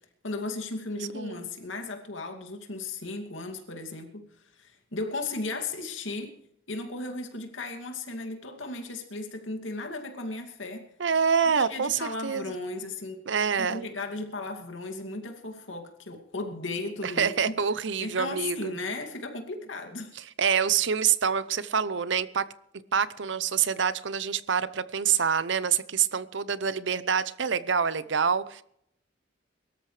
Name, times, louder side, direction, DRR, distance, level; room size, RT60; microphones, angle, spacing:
voice 1, 0.2-4.2 4.5-6.3 6.7-10.8 11.5-13.2 13.6-17.3 18.0-20.1, left 2 dB, 85° left, 4 dB, 2.5 m, -36 dB
voice 2, 1.1-1.5 11.0-12.4 13.3-13.9 17.0-18.7 20.2-22.4 22.9-28.6, right 7 dB, 70° right, 15 dB, 0.7 m, -26 dB
23.0 x 13.0 x 3.3 m, 0.71 s
head